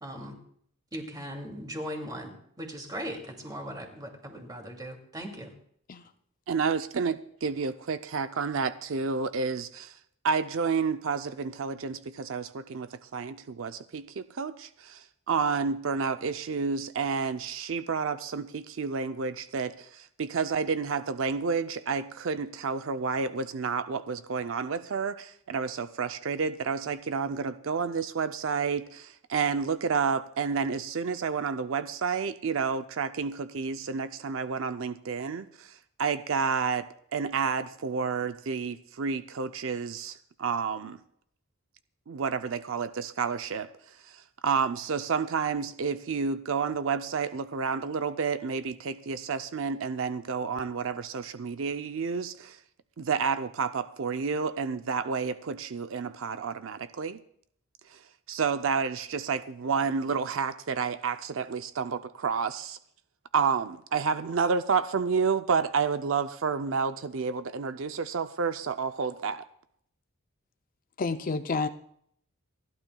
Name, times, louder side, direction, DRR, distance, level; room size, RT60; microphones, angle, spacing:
voice 1, 0.0-0.4 0.9-5.5, equal, 20° right, 2.5 m, -39 dB
voice 2, 6.5-10.0 10.2-41.0 42.1-52.6 53.0-57.2 57.9-58.0 58.3-62.8 63.3-69.4, right 5 dB, 65° right, 0.5 m, -30 dB
voice 3, 71.0-71.7, left 4 dB, 40° left, 0.5 m, -29 dB
28.5 x 12.0 x 2.3 m
head